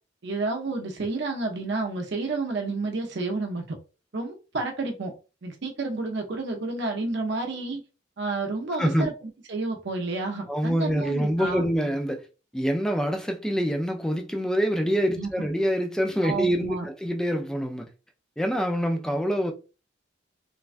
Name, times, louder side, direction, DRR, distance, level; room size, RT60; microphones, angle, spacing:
voice 1, 0.2-3.8 4.1-5.1 5.4-7.8 8.2-9.1 9.5-11.7 15.2-15.3 16.2-16.8, right 3 dB, 60° right, 0.6 m, -30 dB
voice 2, 8.8-9.1 10.5-12.2 12.5-17.9 18.4-19.5, equal, 5° left, 0.3 m, -25 dB
3.2 x 2.2 x 2.5 m
head